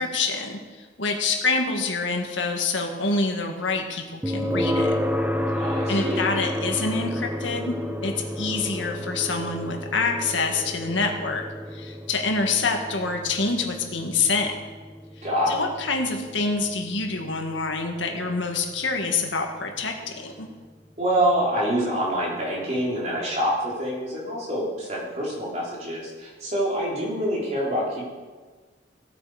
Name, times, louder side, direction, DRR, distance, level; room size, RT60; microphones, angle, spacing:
voice 1, 0.0-4.9 5.9-7.8 8.0-11.4 11.7-14.6 15.5-20.5, left 3 dB, 90° left, 3 dB, 1.8 m, -26 dB
sound 1, 4.2-19.2, equal, 10° right, 0.7 m, -31 dB
voice 2, 5.6-6.3 15.2-15.6 21.0-28.1, equal, 35° right, -5 dB, 3.7 m, -26 dB
16.5 x 8.6 x 4.9 m, 1.4 s
head